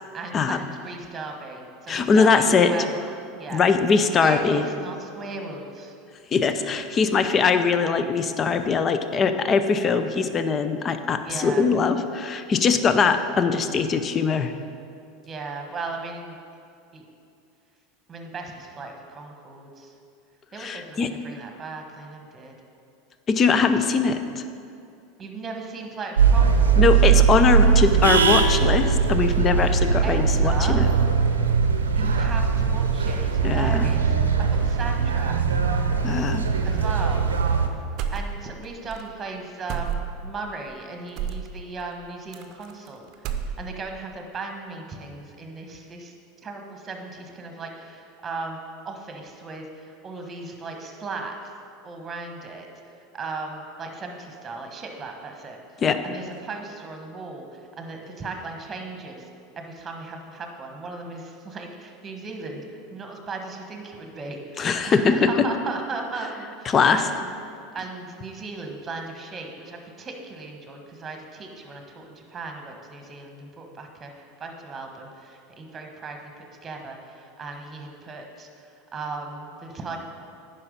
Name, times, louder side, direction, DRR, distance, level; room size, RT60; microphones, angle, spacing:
voice 1, 0.1-3.6 4.0-5.9 11.2-11.6 15.3-16.4 16.9-17.0 18.1-19.9 20.5-22.5 25.2-26.8 30.0-30.9 31.9-35.4 36.6-37.3 38.1-46.1 46.4-48.6 48.8-51.3 51.8-59.3 59.6-67.3 67.7-80.0, right 3 dB, 25° right, 3 dB, 1.4 m, -37 dB
voice 2, 1.9-2.7 3.5-4.6 6.3-14.5 20.6-21.1 23.3-24.4 26.8-30.9 33.4-33.9 36.0-36.4 55.8-56.0 64.6-65.5 66.7-67.0, left 5 dB, 35° left, 9 dB, 0.6 m, -21 dB
sound 1, 26.2-37.7, right 6 dB, 85° right, 0.6 m, -20 dB
sound 2, 38.0-38.6 38.9-39.0 39.7-40.3 41.2-41.5 42.3-42.9 43.1-43.9, right 7 dB, 50° right, 0.6 m, -30 dB
9.6 x 5.6 x 5.3 m, 2.5 s
hypercardioid pair, 85°, 0 cm